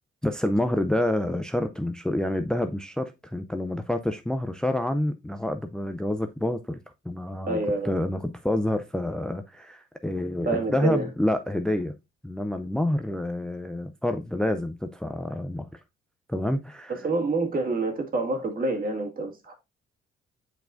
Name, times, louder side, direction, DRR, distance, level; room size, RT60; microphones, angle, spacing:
voice 1, 0.2-6.8 7.1-7.6 7.8-11.9 12.2-15.7 16.3-17.0, left 1 dB, 5° left, 0.4 m, -28 dB
voice 2, 7.5-7.9 10.5-11.1 16.9-19.5, right 3 dB, 45° right, 1.9 m, -27 dB
7.9 x 4.7 x 2.5 m
cardioid pair, 90°, 20 cm